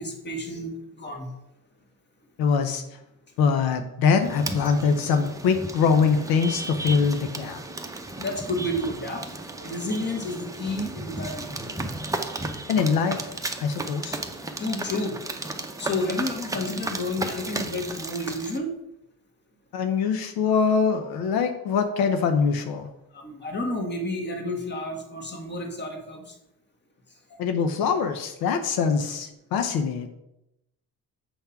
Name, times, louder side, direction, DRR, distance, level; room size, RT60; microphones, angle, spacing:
voice 1, 0.0-1.3 8.2-9.3 9.6-11.6 14.6-15.2 15.8-18.7 23.1-26.4 27.3-27.4, left 1 dB, 30° left, 3 dB, 1.6 m, -31 dB
voice 2, 2.4-2.8 3.4-7.6 12.7-13.2 13.6-14.2 19.7-22.9 27.4-30.1, left 5 dB, 85° left, 7 dB, 0.8 m, -23 dB
sound 1, 4.1-18.6, right 2 dB, 10° right, 0.7 m, -34 dB
7.2 x 3.5 x 5.7 m, 0.85 s
cardioid pair, 100°, 36 cm